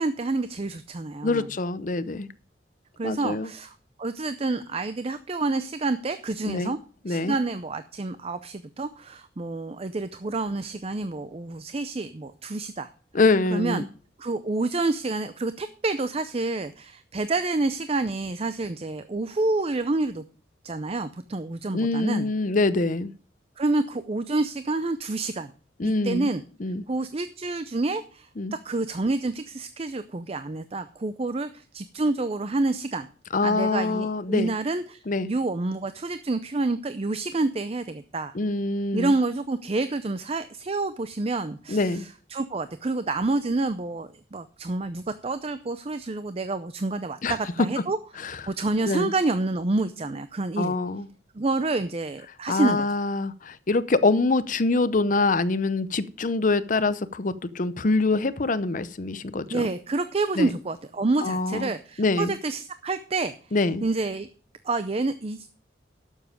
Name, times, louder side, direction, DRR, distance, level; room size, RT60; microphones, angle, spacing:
voice 1, 0.0-1.5 3.0-3.7 4.0-6.8 7.1-12.9 13.5-13.8 14.2-20.2 20.6-22.3 23.6-25.5 26.0-26.4 26.9-33.1 33.4-38.3 38.9-48.0 48.5-50.7 51.3-52.9 59.5-63.3 63.8-64.3 64.6-65.5, right 2 dB, 30° right, 12 dB, 0.5 m, -28 dB
voice 2, 1.2-2.3 3.0-3.5 6.5-6.7 7.0-7.4 13.1-13.9 21.7-23.1 25.8-26.3 26.6-26.8 28.4-28.5 33.3-34.5 35.1-35.3 38.3-39.1 41.7-42.0 47.2-47.4 48.2-48.4 48.9-49.1 50.6-51.1 52.5-59.7 60.4-60.5 61.2-61.7 62.0-62.3 63.5-63.8, left 3 dB, 45° left, 14 dB, 0.7 m, -25 dB
11.5 x 7.3 x 5.0 m, 0.41 s
head